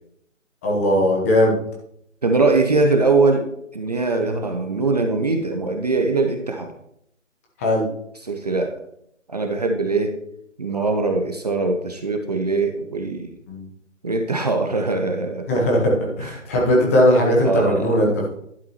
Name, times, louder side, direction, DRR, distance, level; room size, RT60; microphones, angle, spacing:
voice 1, 0.6-1.6 4.2-4.4 7.6-7.8 13.5-13.7 15.5-18.3, equal, 10° left, -2 dB, 1.0 m, -19 dB
voice 2, 2.2-6.7 8.2-8.8 9.3-10.2 10.6-13.4 14.0-15.5 16.2-16.3 17.4-18.0, right 3 dB, 35° right, 4 dB, 0.7 m, -22 dB
11.0 x 8.5 x 3.0 m, 0.74 s
figure-of-eight pair, 150°, 38 cm